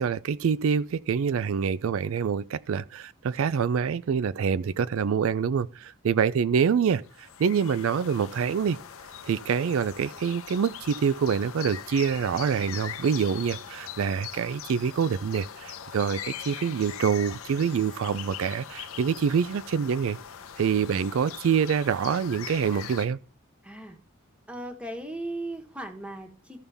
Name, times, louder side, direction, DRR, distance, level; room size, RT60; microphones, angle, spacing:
voice 1, 0.0-8.8 9.3-20.2 20.6-23.2, right 6 dB, 80° right, 0.4 m, -26 dB
sound 1, 7.0-23.1, left 8 dB, 90° left, 0.7 m, -41 dB
voice 2, 23.6-24.0 24.5-26.6, right 1 dB, 5° right, 1.2 m, -37 dB
14.0 x 5.5 x 3.5 m
head